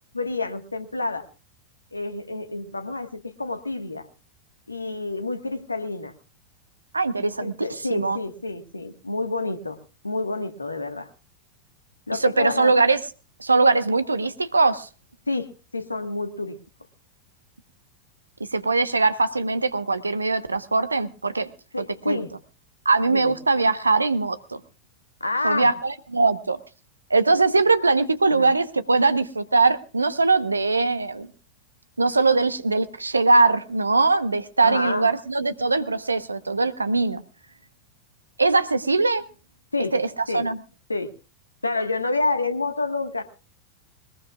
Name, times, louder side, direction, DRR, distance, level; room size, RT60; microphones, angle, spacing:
voice 1, 0.1-1.3 1.9-4.1 4.7-6.1 7.2-9.8 10.0-11.1 12.1-12.7 15.3-16.6 21.7-22.3 23.1-23.4 25.2-25.7 28.3-28.5 34.6-35.1 39.7-39.9 40.3-40.5 40.9-41.1 41.6-43.2, left 3 dB, 80° left, 10 dB, 1.4 m, -28 dB
voice 2, 6.9-7.5 7.9-8.2 12.2-13.0 13.4-14.9 18.4-21.5 22.1-22.2 22.8-24.6 25.4-26.6 27.1-31.3 32.0-37.2 38.4-39.2 39.9-40.1 40.3-40.6, right 3 dB, 80° right, 13 dB, 1.0 m, -21 dB
21.5 x 20.0 x 2.4 m, 0.34 s
figure-of-eight pair, 90°, 0 cm